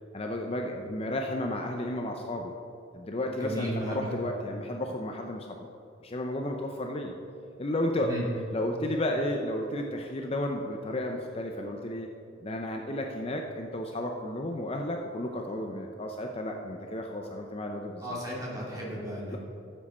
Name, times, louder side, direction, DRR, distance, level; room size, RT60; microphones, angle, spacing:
voice 1, 0.1-2.5 2.9-5.5 6.0-7.1 7.6-8.1 8.5-12.1 12.4-18.2 19.3-19.4, left 1 dB, 30° left, 2 dB, 0.6 m, -32 dB
voice 2, 3.3-4.1 8.0-8.2 18.0-19.3, equal, 20° right, -5 dB, 2.6 m, -35 dB
13.5 x 7.4 x 4.3 m, 2.7 s
head